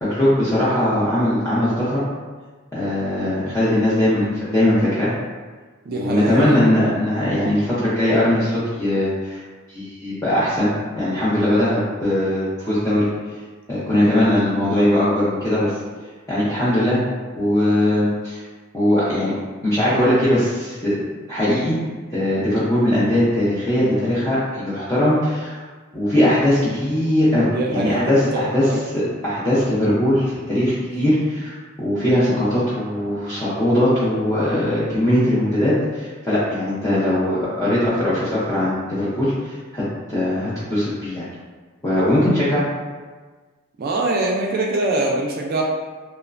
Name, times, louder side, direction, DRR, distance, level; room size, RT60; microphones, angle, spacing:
voice 1, 0.0-2.0 2.7-5.1 5.9-9.4 9.7-13.1 13.7-15.7 16.3-17.0 17.4-18.4 18.7-19.3 19.6-21.0 21.3-21.8 22.1-25.6 25.9-28.7 28.9-39.8 40.1-41.3 41.8-42.6, left 1 dB, 15° left, -11 dB, 0.5 m, -20 dB
voice 2, 5.9-6.6 27.5-28.8 30.8-31.1 43.8-45.6, right 2 dB, 45° right, -1 dB, 0.3 m, -24 dB
2.9 x 2.1 x 2.4 m, 1.4 s
head